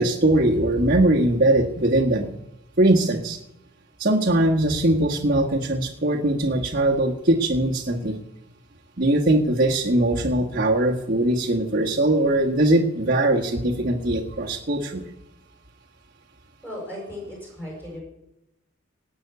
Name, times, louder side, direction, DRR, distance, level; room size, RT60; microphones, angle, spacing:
voice 1, 0.0-2.3 2.8-3.4 4.0-8.1 9.0-15.0, right 1 dB, 45° right, -3 dB, 1.5 m, -21 dB
voice 2, 16.6-18.0, left 1 dB, 10° left, -3 dB, 6.5 m, -36 dB
18.5 x 6.3 x 8.2 m, 0.87 s
head